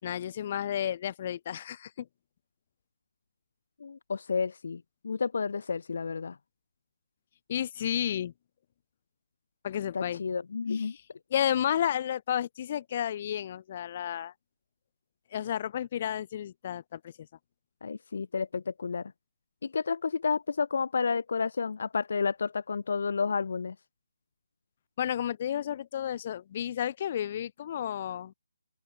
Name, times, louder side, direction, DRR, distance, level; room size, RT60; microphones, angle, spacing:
voice 1, 0.0-2.1 7.5-8.3 9.6-10.2 10.7-10.9 11.3-14.3 15.3-17.1 25.0-28.3, left 10 dB, 30° left, 4.2 m, -32 dB
voice 2, 3.8-6.4 9.9-11.0 17.8-19.1 19.6-23.7, left 5 dB, 50° left, 1.3 m, -31 dB
open air
figure-of-eight pair, 145°, 0 cm